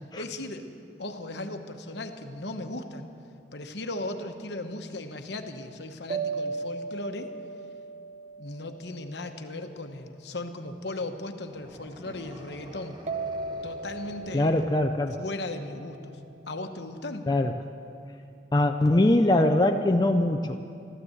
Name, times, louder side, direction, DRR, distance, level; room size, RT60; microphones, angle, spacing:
voice 1, 0.2-0.7 1.0-3.1 3.5-7.3 8.4-13.0 13.6-14.7 15.2-16.2 16.5-17.3, left 2 dB, 65° left, 6 dB, 1.0 m, -37 dB
sound 1, 6.1-9.6 13.1-16.1, right 4 dB, 40° right, 0.7 m, -37 dB
sound 2, 11.5-15.3, equal, 25° right, 1.1 m, -47 dB
voice 2, 14.3-15.2 17.3-17.5 18.5-20.6, left 1 dB, 20° left, 4 dB, 0.4 m, -22 dB
14.0 x 12.5 x 7.8 m, 2.5 s
head